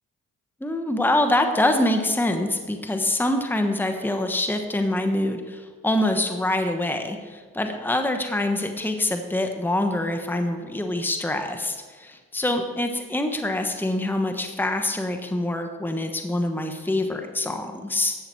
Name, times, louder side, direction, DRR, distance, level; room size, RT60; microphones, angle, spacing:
voice 1, 0.6-18.2, left 1 dB, 5° left, 5 dB, 1.1 m, -25 dB
11.5 x 7.7 x 4.5 m, 1.4 s
supercardioid pair, 50°, 32 cm